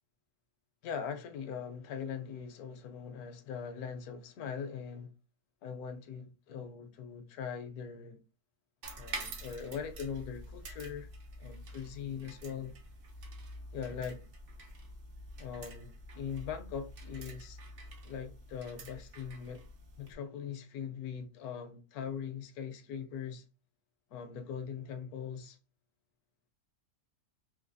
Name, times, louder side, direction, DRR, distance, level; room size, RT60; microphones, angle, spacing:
voice 1, 0.8-5.1 5.6-8.2 9.0-11.1 11.4-12.7 13.7-14.2 15.4-17.6 18.0-19.6 20.0-23.4 24.1-25.6, left 7 dB, 75° left, 1.0 m, -41 dB
sound 1, 8.8-20.1, right 1 dB, 60° right, 0.6 m, -47 dB
3.2 x 2.6 x 2.5 m
omnidirectional pair, 1.7 m